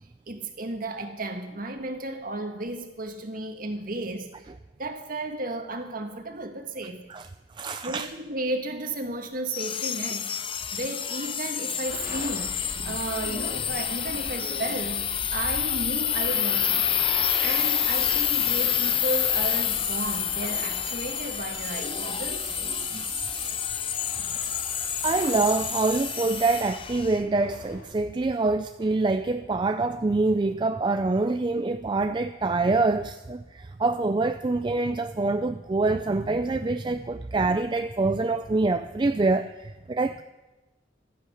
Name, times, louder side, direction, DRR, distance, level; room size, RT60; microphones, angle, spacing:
voice 1, 0.3-4.5 4.8-7.0 7.8-17.0 17.4-22.5, right 2 dB, 50° right, 1.8 m, -34 dB
voice 2, 7.6-8.1 22.9-23.1 25.0-40.2, right 3 dB, 25° right, 0.4 m, -25 dB
sound 1, 9.5-27.2, left 8 dB, 30° left, 0.7 m, -28 dB
sound 2, 11.9-27.9, left 1 dB, 50° left, 2.5 m, -45 dB
sound 3, 17.2-20.2 21.5-23.5 24.4-26.6, left 4 dB, 85° left, 6.5 m, -37 dB
16.0 x 11.5 x 6.5 m
head